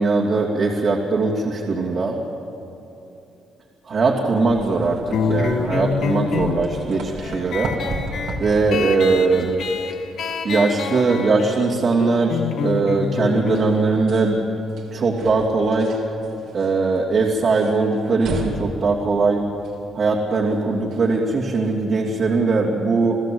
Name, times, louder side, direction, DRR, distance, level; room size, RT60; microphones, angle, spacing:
voice 1, 0.0-2.2 3.9-7.7 8.4-9.6 10.4-14.4 14.9-15.9 16.5-19.4 19.9-23.2, right 3 dB, 55° right, -4 dB, 3.0 m, -20 dB
sound 1, 4.5-21.8, right 3 dB, 75° right, 3.3 m, -36 dB
sound 2, 5.1-16.2, left 5 dB, 70° left, 1.8 m, -27 dB
28.5 x 16.0 x 8.0 m, 2.9 s
cardioid pair, 90°, 0 cm